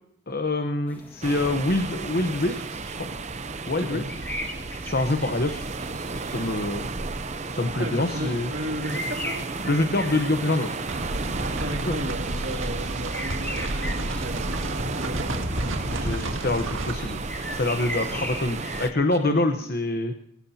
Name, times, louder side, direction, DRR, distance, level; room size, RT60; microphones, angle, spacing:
voice 1, 0.3-2.6 3.7-4.0 4.8-5.6 6.3-6.9 7.5-8.5 9.6-10.7 11.9-12.0 15.8-17.2 17.5-20.1, left 2 dB, 45° left, 7 dB, 1.0 m, -25 dB
sound 1, 0.9-18.9, left 1 dB, 10° left, 1.8 m, -40 dB
sound 2, 1.2-18.9, right 3 dB, 35° right, 0.7 m, -33 dB
voice 2, 7.8-9.5 11.6-15.4 19.2-19.7, equal, 55° right, 0 dB, 2.5 m, -34 dB
sound 3, 10.8-16.9, right 1 dB, 75° right, 1.8 m, -31 dB
23.5 x 17.5 x 2.8 m, 0.69 s
head